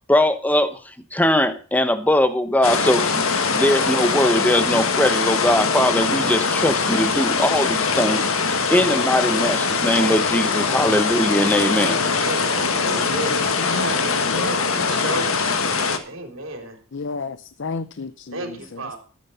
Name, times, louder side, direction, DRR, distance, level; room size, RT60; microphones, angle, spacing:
voice 1, 0.1-0.8 1.1-12.0 13.7-13.8, left 1 dB, 5° left, 11 dB, 1.0 m, -20 dB
sound 1, 2.6-16.0, left 4 dB, 75° left, 1.7 m, -22 dB
voice 2, 11.8-16.8 18.3-19.0, right 2 dB, 65° right, 5 dB, 3.7 m, -32 dB
voice 3, 13.2-13.9 14.3-14.9 16.9-18.4, left 4 dB, 60° left, 13 dB, 0.6 m, -31 dB
13.0 x 9.3 x 5.7 m, 0.38 s
head